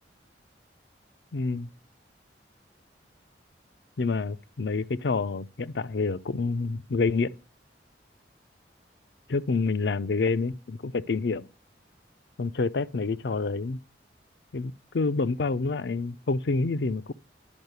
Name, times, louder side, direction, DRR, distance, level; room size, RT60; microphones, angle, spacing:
voice 1, 1.3-1.7 4.0-7.3 9.3-11.5 12.4-13.8 14.5-17.1, left 4 dB, 70° left, 0.5 m, -28 dB
10.5 x 5.5 x 8.0 m
head